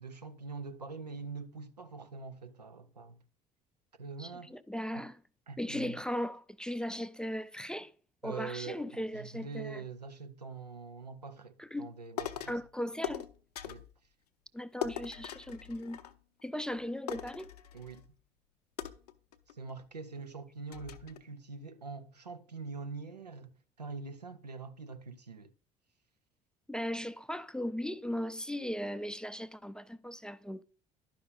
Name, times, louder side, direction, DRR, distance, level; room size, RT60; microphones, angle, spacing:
voice 1, 0.0-3.2 4.0-4.5 4.9-5.1 5.5-6.0 8.2-12.6 13.6-13.9 17.7-18.1 19.5-23.5 23.8-25.5, right 4 dB, 90° right, 0.5 m, -44 dB
voice 2, 4.2-5.2 5.6-7.9 8.2-9.8 11.6-11.9 12.5-13.3 14.5-16.0 16.4-17.5 26.7-30.6, equal, 5° left, 0.4 m, -37 dB
sound 1, 12.2-12.6 13.0-13.9 14.8-16.4 16.7-16.8 17.1-18.1 18.8-19.7 20.2-20.3 20.7-21.2, left 10 dB, 75° left, 0.6 m, -41 dB
11.5 x 5.4 x 3.7 m
figure-of-eight pair, 60°, 21 cm